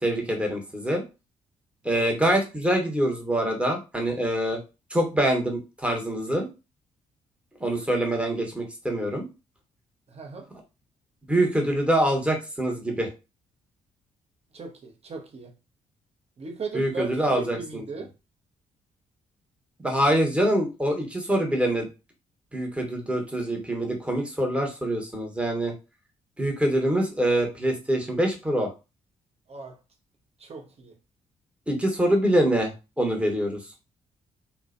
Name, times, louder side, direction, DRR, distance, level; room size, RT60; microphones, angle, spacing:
voice 1, 0.0-1.0 1.8-4.6 4.9-6.5 7.6-9.2 11.3-13.1 16.7-17.8 19.8-21.9 22.5-25.7 26.4-28.7 31.7-33.6, right 1 dB, 5° right, 0.9 m, -25 dB
voice 2, 10.1-10.5 14.5-15.5 16.4-18.1 29.5-29.8 30.4-30.9, right 4 dB, 40° right, 0.7 m, -37 dB
2.4 x 2.1 x 2.5 m
hypercardioid pair, 45°, 17 cm